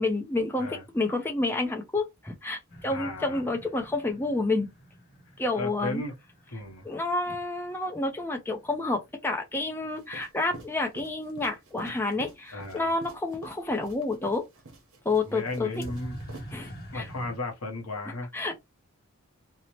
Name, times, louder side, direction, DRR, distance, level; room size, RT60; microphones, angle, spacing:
voice 1, 0.0-4.7 5.4-6.0 6.8-14.4 15.0-15.7 16.5-17.1 18.3-18.6, left 2 dB, 10° left, 0.4 m, -29 dB
sound 1, 2.7-8.5 15.8-17.4, equal, 45° left, 0.8 m, -46 dB
voice 2, 2.9-3.4 5.6-6.1 6.5-6.9 12.5-12.9 15.3-16.2 16.9-18.6, left 2 dB, 90° left, 0.9 m, -35 dB
sound 2, 10.0-16.5, right 2 dB, 75° right, 0.8 m, -47 dB
2.7 x 2.0 x 2.9 m
head